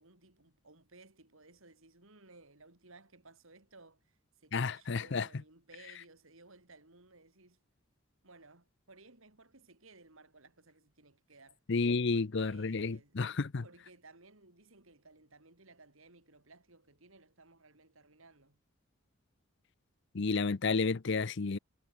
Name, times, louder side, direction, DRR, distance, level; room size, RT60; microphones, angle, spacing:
voice 1, 0.0-7.6 8.2-11.6 12.1-13.2 13.6-18.6, right 3 dB, 70° right, 3.9 m, -59 dB
voice 2, 4.5-5.3 11.7-13.6 20.1-21.6, left 4 dB, 55° left, 0.6 m, -31 dB
head